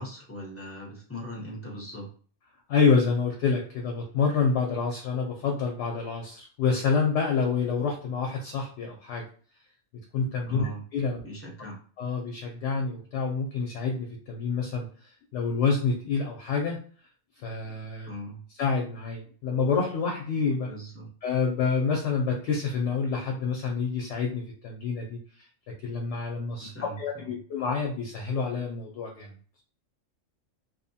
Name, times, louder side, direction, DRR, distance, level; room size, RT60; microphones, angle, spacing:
voice 1, 0.0-2.1 10.5-10.8 11.2-11.8 18.1-18.4 20.7-21.1 26.6-27.3, equal, 15° left, -2 dB, 0.4 m, -40 dB
voice 2, 2.7-9.2 10.1-11.2 12.0-14.9 15.3-16.8 17.4-18.1 18.6-20.7 21.2-25.2 25.8-26.7 27.0-29.3, left 5 dB, 70° left, 1 dB, 0.8 m, -27 dB
2.7 x 2.1 x 2.7 m, 0.43 s
omnidirectional pair, 1.4 m